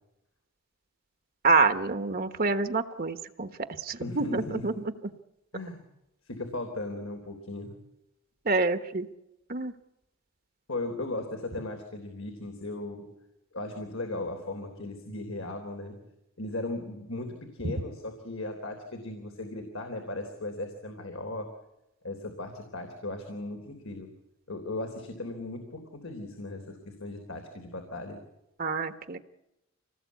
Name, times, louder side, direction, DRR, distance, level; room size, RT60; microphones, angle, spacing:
voice 1, 1.4-3.5 3.8-4.7 8.4-9.1 9.5-9.7 28.6-29.2, right 4 dB, 45° right, 9 dB, 1.2 m, -27 dB
voice 2, 4.0-4.8 5.5-5.8 6.2-7.8 10.7-13.1 13.5-16.0 16.4-21.5 22.0-24.1 24.5-28.2, left 2 dB, 85° left, 4 dB, 3.5 m, -37 dB
26.0 x 19.0 x 8.3 m, 0.91 s
head